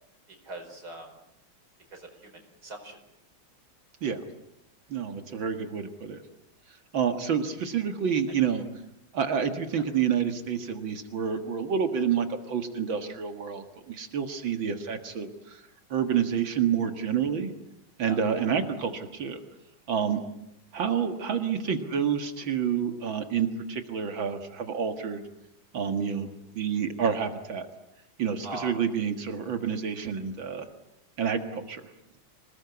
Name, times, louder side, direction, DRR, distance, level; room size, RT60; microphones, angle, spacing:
voice 1, 0.4-1.1 1.9-3.0 9.7-9.8 18.0-18.2 28.4-28.7, right 1 dB, 50° right, 2 dB, 5.6 m, -41 dB
voice 2, 4.9-6.2 6.9-8.6 9.1-15.6 15.9-17.5 18.0-19.4 19.9-20.2 20.7-25.2 25.7-26.3 26.6-27.7 28.2-30.7 31.2-31.9, right 7 dB, 70° right, 7 dB, 2.5 m, -28 dB
27.5 x 19.0 x 9.6 m, 0.81 s
omnidirectional pair, 2.2 m